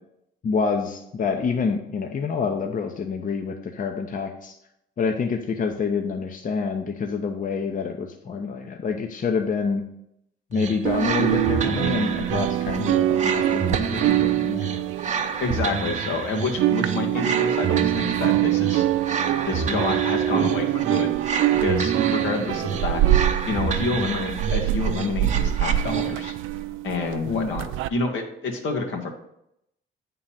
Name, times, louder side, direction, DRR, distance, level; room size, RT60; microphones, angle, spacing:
voice 1, 0.4-4.6 5.0-9.8 10.5-14.7 27.2-27.5, left 5 dB, 40° left, 4 dB, 0.8 m, -27 dB
sound 1, 10.5-26.4, right 5 dB, 35° right, 0.8 m, -30 dB
sound 2, 10.8-16.2 16.4-27.9, right 13 dB, 85° right, 0.4 m, -24 dB
voice 2, 15.4-18.9 19.4-21.1 21.5-23.0 23.5-26.3 26.8-27.6 27.9-29.1, left 3 dB, 75° left, 2 dB, 1.5 m, -28 dB
8.6 x 3.9 x 5.7 m, 0.78 s
cardioid pair, 90°, 20 cm